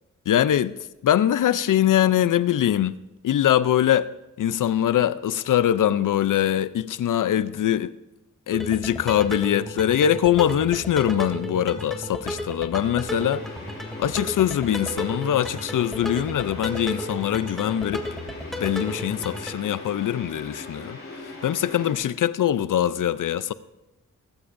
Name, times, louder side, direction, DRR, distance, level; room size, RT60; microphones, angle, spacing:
voice 1, 0.3-3.0 3.2-4.1 4.4-7.9 8.5-13.4 14.0-18.0 18.6-21.0 21.4-23.5, left 11 dB, 75° left, 0.6 m, -22 dB
sound 1, 8.5-19.5, equal, ahead, 2.4 m, -34 dB
sound 2, 13.0-21.9, left 2 dB, 45° left, 6.2 m, -40 dB
19.0 x 15.5 x 2.6 m
cardioid pair, 75°, 31 cm